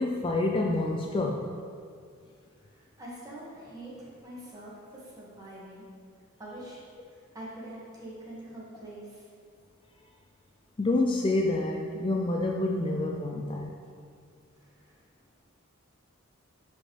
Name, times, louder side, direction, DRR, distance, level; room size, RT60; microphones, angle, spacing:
voice 1, 0.0-1.5 10.8-13.7, left 2 dB, 25° left, 1 dB, 0.4 m, -28 dB
voice 2, 2.6-5.8 6.4-6.8 7.1-9.3 14.6-15.0, right 1 dB, 20° right, -7 dB, 1.8 m, -45 dB
10.0 x 5.1 x 3.3 m, 2.2 s
head